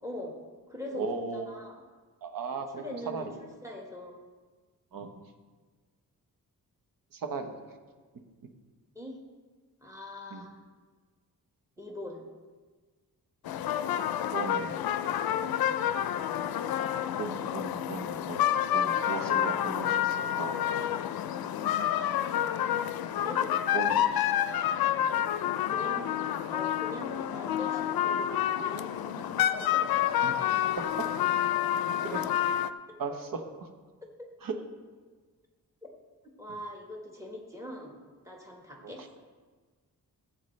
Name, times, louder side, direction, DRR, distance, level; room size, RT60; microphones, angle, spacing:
voice 1, 0.0-0.4 0.7-1.7 2.7-4.1 8.9-9.2 9.8-10.6 11.8-12.3 23.1-24.0 25.7-26.1 26.5-30.1 36.4-37.9 38.2-39.2, left 1 dB, 10° right, 0 dB, 1.5 m, -42 dB
voice 2, 0.9-1.5 2.2-3.4 4.9-5.1 7.1-7.6 10.3-10.5 14.3-14.9 17.2-20.6 23.7-24.0 30.2-30.3 31.0-31.3 32.0-32.2 33.0-33.4 34.4-34.5 38.8-39.1, right 4 dB, 65° right, 6 dB, 1.1 m, -37 dB
sound 1, 13.5-32.7, left 11 dB, 75° left, 0.5 m, -29 dB
15.0 x 8.0 x 3.3 m, 1.4 s
wide cardioid pair, 170°, 36 cm